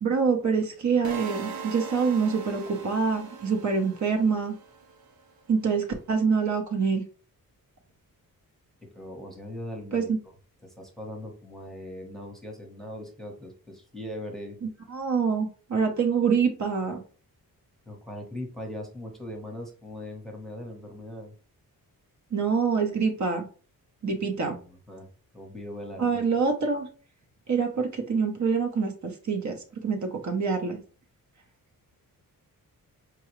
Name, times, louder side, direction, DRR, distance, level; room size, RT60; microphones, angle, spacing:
voice 1, 0.0-4.5 5.5-7.0 9.9-10.2 14.6-17.0 22.3-23.4 24.0-24.6 26.0-26.9 27.5-29.6 29.8-30.8, right 5 dB, 50° right, 3 dB, 0.8 m, -26 dB
sound 1, 1.0-5.1, right 5 dB, 75° right, 0.5 m, -40 dB
voice 2, 8.9-10.1 10.6-14.6 17.9-21.3 24.5-25.1 25.3-26.2, left 1 dB, ahead, 0 dB, 0.9 m, -40 dB
4.8 x 2.3 x 3.0 m, 0.39 s
cardioid pair, 95°, 36 cm